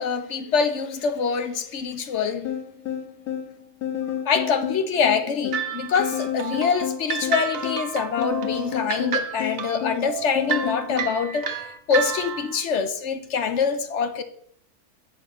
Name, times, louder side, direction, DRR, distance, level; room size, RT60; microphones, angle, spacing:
voice 1, 0.0-2.5 4.2-11.5 11.9-14.2, left 6 dB, 60° left, 0.9 m, -25 dB
sound 1, 2.4-11.1, left 9 dB, 80° left, 1.8 m, -31 dB
sound 2, 5.5-12.6, right 8 dB, 65° right, 1.2 m, -31 dB
8.1 x 5.7 x 5.5 m
omnidirectional pair, 1.5 m